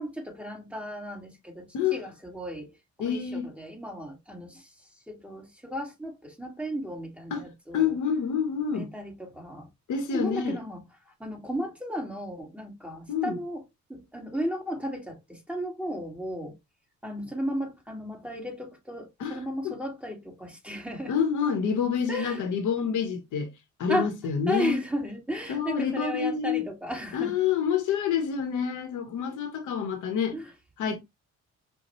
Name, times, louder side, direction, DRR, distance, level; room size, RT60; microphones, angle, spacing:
voice 1, 0.0-4.7 5.1-8.0 8.7-9.7 10.1-10.8 11.2-13.6 13.9-16.6 17.0-21.2 22.1-22.4 23.9-24.1 24.5-27.3 30.3-30.5, equal, 5° right, 1.7 m, -34 dB
voice 2, 3.0-3.5 7.3-7.4 7.7-8.9 9.9-10.6 13.1-13.4 19.2-19.4 19.6-19.7 21.1-23.5 23.8-24.8 25.5-26.6 27.1-30.4 30.8-31.0, left 7 dB, 80° left, 1.0 m, -27 dB
5.4 x 2.3 x 2.9 m
cardioid pair, 90°, 30 cm